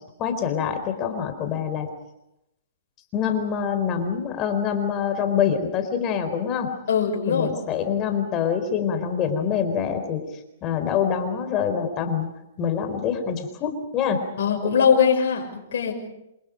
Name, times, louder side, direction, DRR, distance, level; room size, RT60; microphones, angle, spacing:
voice 1, 0.2-1.9 3.1-6.7 7.3-10.2 10.6-12.3 12.6-14.2, left 7 dB, 30° left, 7 dB, 4.3 m, -25 dB
voice 2, 6.9-7.5 14.4-15.9, left 7 dB, 65° left, 0 dB, 6.4 m, -21 dB
27.5 x 27.5 x 5.2 m, 0.86 s
hypercardioid pair, 125°, 0 cm